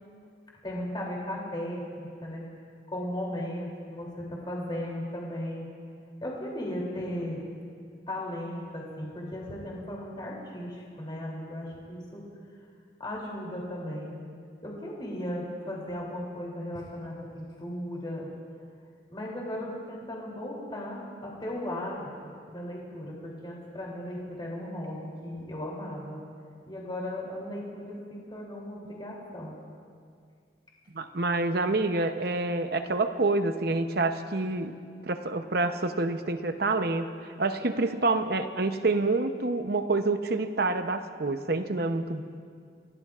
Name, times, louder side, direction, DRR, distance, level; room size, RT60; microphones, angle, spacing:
voice 1, 0.6-2.4 2.9-5.7 6.2-7.4 8.1-12.2 13.0-14.1 14.6-18.3 19.1-26.2 26.6-29.5, left 1 dB, 25° left, -4 dB, 3.0 m, -36 dB
voice 2, 30.9-34.7 35.0-37.1 37.4-42.2, right 3 dB, 55° right, 8 dB, 0.8 m, -27 dB
29.5 x 17.0 x 2.5 m, 2.2 s
head